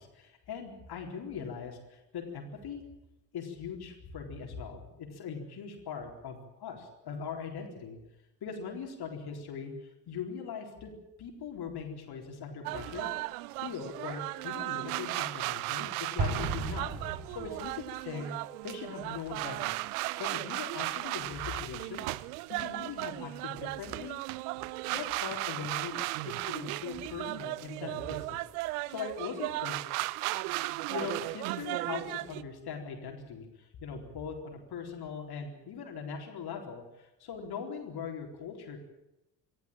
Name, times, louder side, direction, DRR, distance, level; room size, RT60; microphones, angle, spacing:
voice 1, 0.0-2.8 3.3-8.0 8.4-10.9 11.2-13.1 13.6-17.0 17.3-18.3 18.6-19.7 20.2-22.1 22.5-24.2 24.9-28.4 28.9-29.8 30.8-38.9, left 6 dB, 50° left, 3 dB, 4.2 m, -40 dB
sound 1, 12.6-32.4, right 20 dB, 65° right, 0.8 m, -36 dB
Explosion, 16.2-17.9, right 3 dB, 50° right, 5.5 m, -34 dB
25.0 x 15.0 x 8.9 m, 0.94 s
figure-of-eight pair, 50°, 49 cm